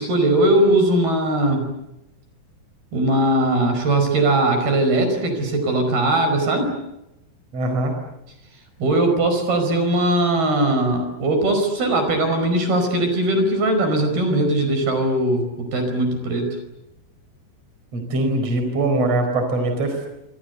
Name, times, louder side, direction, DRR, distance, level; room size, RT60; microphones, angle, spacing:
voice 1, 0.0-1.7 2.9-6.7 8.8-16.5, right 1 dB, 65° right, 6 dB, 6.8 m, -20 dB
voice 2, 7.5-7.9 17.9-20.1, right 2 dB, 40° right, 6 dB, 5.5 m, -22 dB
27.5 x 25.5 x 8.1 m, 0.88 s
omnidirectional pair, 4.8 m